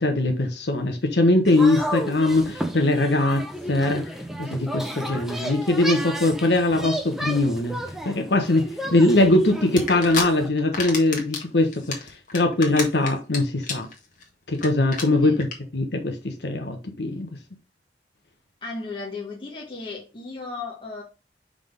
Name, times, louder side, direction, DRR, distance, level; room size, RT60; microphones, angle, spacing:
voice 1, 0.0-4.0 4.4-7.8 8.0-11.8 12.3-13.9 14.5-15.5 15.7-17.3, left 2 dB, 75° left, 1.1 m, -21 dB
sound 1, 1.5-10.5, equal, ahead, 0.8 m, -33 dB
sound 2, 9.8-10.2 10.6-11.4 11.7-13.4 13.6-13.9 14.2-14.3 14.5-14.7 14.9-15.0 15.4-15.5, left 5 dB, 45° left, 1.6 m, -28 dB
voice 2, 18.6-21.0, left 3 dB, 30° left, 1.6 m, -35 dB
5.7 x 3.8 x 5.2 m
head